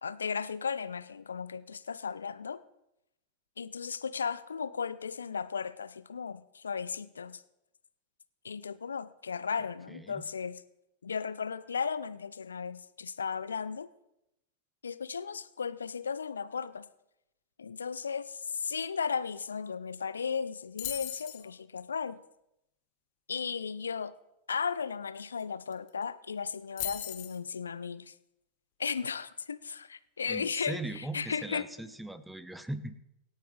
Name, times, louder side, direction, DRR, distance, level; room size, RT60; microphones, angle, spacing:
voice 1, 0.0-2.6 3.6-7.4 8.4-10.6 11.0-13.9 14.8-16.9 17.6-22.2 23.3-24.1 24.5-28.1 28.8-31.7, left 6 dB, 70° left, 15 dB, 0.6 m, -35 dB
voice 2, 9.9-10.2 30.3-33.0, right 2 dB, 5° right, 13 dB, 0.9 m, -39 dB
sound 1, 20.8-21.4 25.4-25.5 25.7-26.0 26.8-27.4, left 14 dB, 50° left, 1.3 m, -37 dB
25.0 x 9.2 x 3.3 m, 0.85 s
figure-of-eight pair, 90°, 0 cm